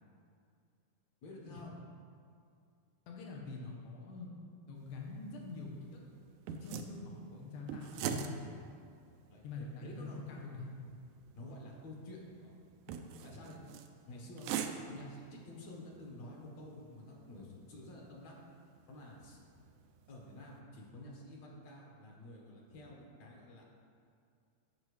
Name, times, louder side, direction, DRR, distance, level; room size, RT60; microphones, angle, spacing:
voice 1, 1.2-1.7 9.3-10.2 11.4-12.5 13.2-13.6 14.1-14.6 14.9-18.4 18.9-19.4 20.1-23.7, left 1 dB, 65° left, -2 dB, 2.4 m, -50 dB
voice 2, 3.1-4.3 4.7-6.0 6.5-8.7 9.4-10.7, left 3 dB, 90° left, -2 dB, 2.6 m, -45 dB
sound 1, 4.8-20.6, right 7 dB, 80° right, 1.9 m, -46 dB
14.5 x 5.6 x 3.2 m, 2.3 s
omnidirectional pair, 3.5 m